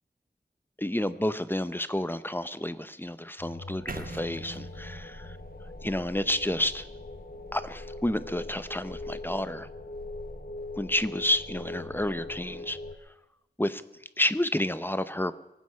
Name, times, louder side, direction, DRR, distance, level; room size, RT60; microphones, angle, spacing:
voice 1, 0.8-5.1 5.8-6.9 7.5-9.7 10.8-12.8 13.6-13.8 14.2-15.3, left 1 dB, 10° left, 13 dB, 0.8 m, -30 dB
sound 1, 3.4-13.0, left 2 dB, 60° left, 1.4 m, -41 dB
sound 2, 3.9-7.9, right 3 dB, 55° right, 1.2 m, -44 dB
23.5 x 9.6 x 5.7 m, 0.95 s
wide cardioid pair, 60°, 18 cm